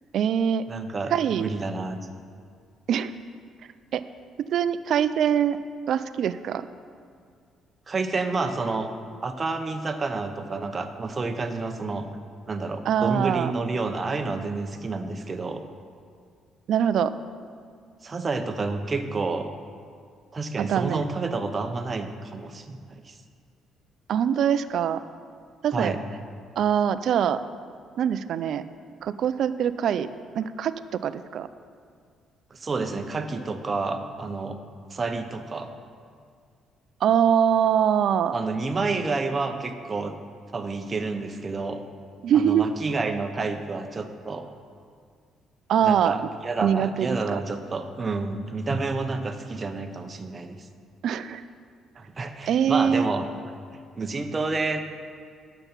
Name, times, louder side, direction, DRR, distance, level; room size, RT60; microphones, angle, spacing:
voice 1, 0.1-0.6 1.1-1.5 2.9-3.1 3.9-4.0 4.4-5.6 5.9-6.6 12.9-13.5 16.7-17.1 20.6-21.0 24.1-25.0 25.6-25.9 26.6-27.4 28.0-28.6 29.0-30.1 30.4-30.7 31.0-31.5 37.0-38.3 42.2-42.7 45.7-46.1 46.6-47.4 51.0-51.4 52.5-53.1, right 8 dB, 65° right, 13 dB, 0.3 m, -23 dB
voice 2, 0.7-2.0 7.9-8.9 9.2-12.1 12.5-15.6 18.0-19.5 20.3-23.1 25.7-26.0 32.5-34.6 34.9-35.7 38.3-40.2 40.5-41.8 42.3-44.5 45.8-50.7 52.0-53.3 54.0-54.8, right 3 dB, 30° right, 7 dB, 0.8 m, -29 dB
9.0 x 6.7 x 5.8 m, 2.1 s
cardioid pair, 90°, 0 cm